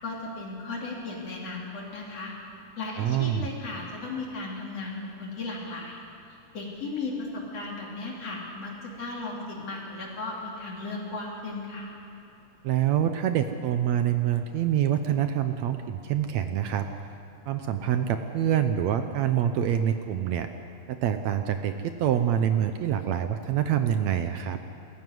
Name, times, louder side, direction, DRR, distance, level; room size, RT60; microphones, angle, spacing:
voice 1, 0.0-2.3 2.8-6.0 6.5-11.9, left 3 dB, 50° left, -2 dB, 3.9 m, -36 dB
voice 2, 3.0-3.5 12.6-16.9 17.5-20.5 20.9-24.6, right 10 dB, 70° right, 8 dB, 1.8 m, -26 dB
21.0 x 14.5 x 9.6 m, 2.9 s
omnidirectional pair, 3.6 m